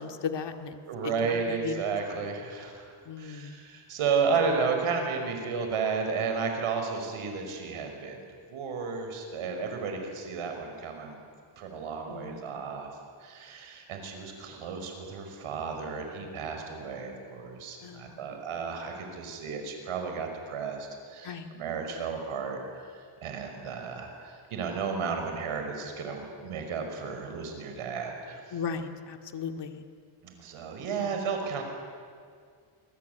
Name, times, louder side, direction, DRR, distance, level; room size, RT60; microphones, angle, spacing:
voice 1, 0.0-0.8 1.0-2.2 3.1-3.6 12.1-12.6 17.8-18.3 21.2-21.5 28.5-29.8 31.0-31.1, left 6 dB, 55° left, 6 dB, 2.3 m, -37 dB
voice 2, 0.9-2.9 3.2-8.2 8.5-11.1 11.6-12.9 13.2-22.6 23.2-28.4 30.2-31.6, right 5 dB, 75° right, 4 dB, 5.7 m, -33 dB
27.5 x 20.5 x 9.5 m, 2.1 s
cardioid pair, 105°, 50 cm